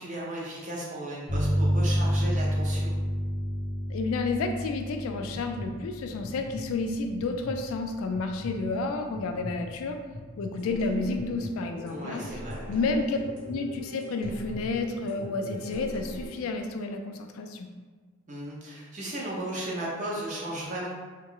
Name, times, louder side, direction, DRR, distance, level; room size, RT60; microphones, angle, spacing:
voice 1, 0.0-2.9 11.9-12.6 18.3-20.9, right 1 dB, 35° right, -5 dB, 0.6 m, -35 dB
sound 1, 1.3-10.6, equal, 25° left, 0.6 m, -31 dB
voice 2, 3.9-10.0 10.4-12.3 12.7-13.2 13.5-17.7, left 3 dB, 85° left, 5 dB, 0.3 m, -30 dB
sound 2, 4.6-4.7 5.2-5.7 6.2-6.6 7.1-7.6 8.1-8.6 9.1-9.6 10.1-10.5 11.2-11.5 12.2-12.6 13.2-13.6 14.2-14.6 15.1-15.6, left 2 dB, 50° right, 1.1 m, -40 dB
sound 3, 10.6-16.3, left 1 dB, 75° right, 0.8 m, -43 dB
2.2 x 2.0 x 3.7 m, 1.4 s
head